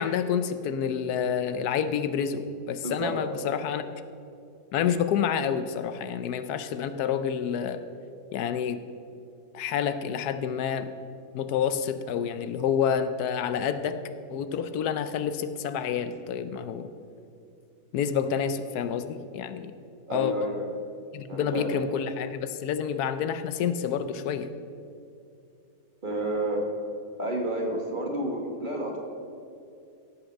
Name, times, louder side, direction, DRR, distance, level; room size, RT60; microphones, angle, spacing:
voice 1, 0.0-3.8 4.7-7.8 8.3-8.8 9.5-10.9 11.3-14.0 14.3-16.9 17.9-19.7 20.1-20.5 21.1-24.5, left 8 dB, 85° left, 11 dB, 1.2 m, -28 dB
voice 2, 20.1-20.7 21.3-21.7 26.0-26.6 27.2-29.0, right 1 dB, 35° right, 0 dB, 1.7 m, -30 dB
16.0 x 5.9 x 6.4 m, 2.5 s
omnidirectional pair, 1.6 m